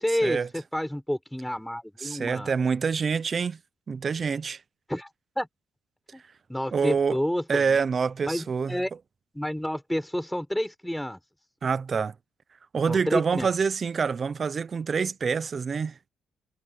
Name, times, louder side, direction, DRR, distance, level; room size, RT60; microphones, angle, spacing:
voice 1, 0.0-2.5 4.9-5.1 5.4-5.5 6.1-6.2 6.5-7.8 8.2-8.9 9.3-11.2 12.9-13.5, equal, 5° left, 5.7 m, -29 dB
voice 2, 2.0-3.6 3.9-4.6 6.7-7.2 7.5-8.8 11.6-12.1 12.7-16.0, right 5 dB, 40° right, 0.9 m, -26 dB
cardioid pair, 90°, 0 cm